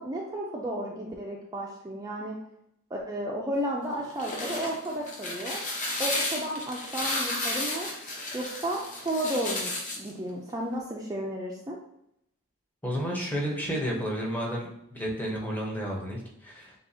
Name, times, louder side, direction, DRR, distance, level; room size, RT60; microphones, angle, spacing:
voice 1, 0.0-2.4 2.9-5.6 6.0-7.9 8.3-11.8, right 1 dB, 15° right, -2 dB, 0.4 m, -33 dB
sound 1, 4.0-10.1, left 2 dB, 35° left, 0.9 m, -33 dB
voice 2, 12.8-16.7, equal, 10° left, -2 dB, 0.8 m, -31 dB
6.9 x 2.4 x 2.7 m, 0.76 s
head